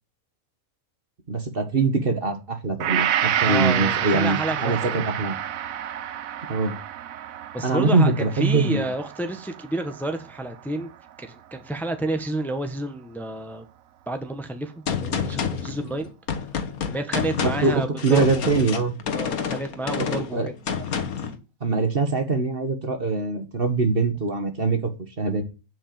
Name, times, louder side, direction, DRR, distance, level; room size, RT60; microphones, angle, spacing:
voice 1, 1.3-5.3 6.5-6.7 7.6-8.9 17.4-18.9 20.3-20.5 21.6-24.8 25.2-25.4, right 3 dB, 40° right, 7 dB, 1.7 m, -23 dB
Gong, 2.8-11.1 11.6-11.7, right 10 dB, 70° right, 1.1 m, -29 dB
voice 2, 3.4-5.1 7.5-10.9 11.2-13.7 14.1-16.1 16.8-18.6 19.1-20.4, right 1 dB, ahead, 7 dB, 1.3 m, -30 dB
Gunshot gunfire, 14.9-21.4, left 6 dB, 75° left, 1.7 m, -28 dB
7.9 x 7.9 x 7.7 m, 0.32 s
omnidirectional pair, 1.5 m